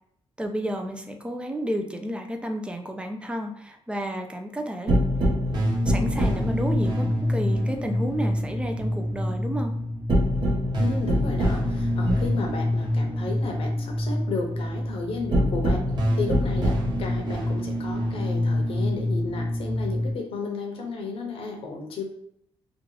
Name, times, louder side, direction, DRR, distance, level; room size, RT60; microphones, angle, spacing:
voice 1, 0.4-5.0 5.9-9.7, equal, 10° right, 4 dB, 0.4 m, -31 dB
sound 1, 4.9-20.1, equal, 45° right, 1.1 m, -25 dB
voice 2, 10.8-15.8 16.1-22.0, left 3 dB, 65° left, 2 dB, 0.8 m, -33 dB
2.9 x 2.4 x 3.8 m, 0.73 s
cardioid pair, 115°, 10 cm